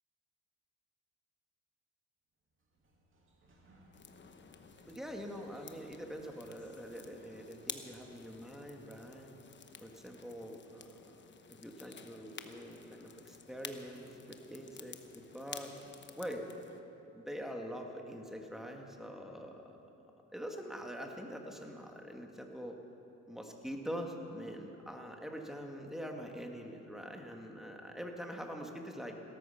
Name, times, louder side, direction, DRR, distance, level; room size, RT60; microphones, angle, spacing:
Sliding door, 2.4-9.8, right 1 dB, 40° right, 2.7 m, -66 dB
sound 1, 3.9-16.8, left 6 dB, 40° left, 1.0 m, -52 dB
voice 1, 4.9-9.3 9.8-11.1 11.5-15.8 16.2-16.5 17.1-19.8 20.3-22.8 23.3-29.2, equal, ahead, 2 dB, 1.9 m, -44 dB
17.0 x 13.5 x 5.8 m, 2.9 s
cardioid pair, 90°, 30 cm